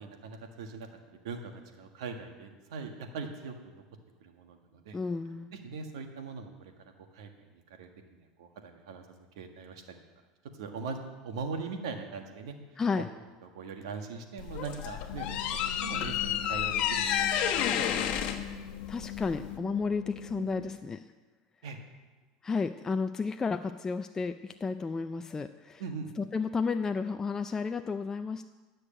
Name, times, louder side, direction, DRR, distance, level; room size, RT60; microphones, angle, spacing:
voice 1, 0.0-3.8 4.2-5.0 5.5-6.7 7.1-9.0 9.3-10.0 10.6-12.8 13.4-15.4 15.6-18.1 21.6-21.8 25.8-26.1, right 4 dB, 90° right, 5 dB, 1.6 m, -41 dB
voice 2, 4.9-5.5 12.8-13.1 18.9-21.1 22.4-25.8 26.2-28.5, left 4 dB, 20° left, 8 dB, 0.4 m, -32 dB
sound 1, 14.4-19.6, left 9 dB, 55° left, 1.2 m, -31 dB
sound 2, 15.1-20.8, left 9 dB, 90° left, 0.9 m, -42 dB
12.0 x 6.5 x 8.8 m, 1.3 s
supercardioid pair, 120°, 3 cm